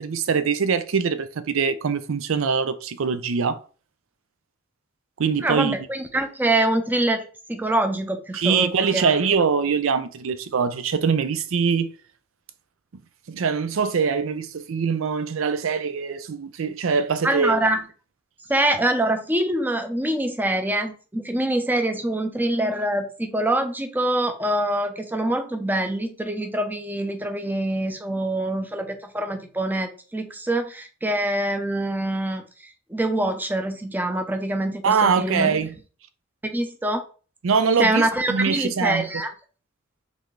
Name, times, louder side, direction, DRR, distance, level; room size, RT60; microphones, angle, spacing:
voice 1, 0.0-3.6 5.2-5.8 8.3-11.9 13.3-17.6 34.8-35.7 37.4-39.0, right 5 dB, 70° right, 0.5 m, -23 dB
voice 2, 5.4-7.2 7.5-9.2 17.2-17.8 18.5-35.6 36.4-37.0 37.8-39.3, right 1 dB, 10° right, 0.6 m, -25 dB
4.0 x 3.3 x 3.2 m
head